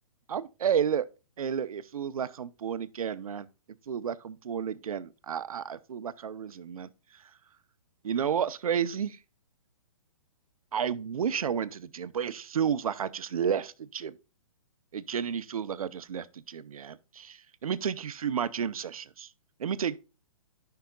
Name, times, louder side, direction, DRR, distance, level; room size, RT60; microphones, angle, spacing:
voice 1, 0.3-1.1 1.4-3.5 3.8-7.4 8.0-9.2 10.7-14.2 14.9-19.3 19.6-20.0, right 8 dB, 80° right, 0.7 m, -31 dB
14.0 x 5.7 x 2.3 m
hypercardioid pair, 160°, 18 cm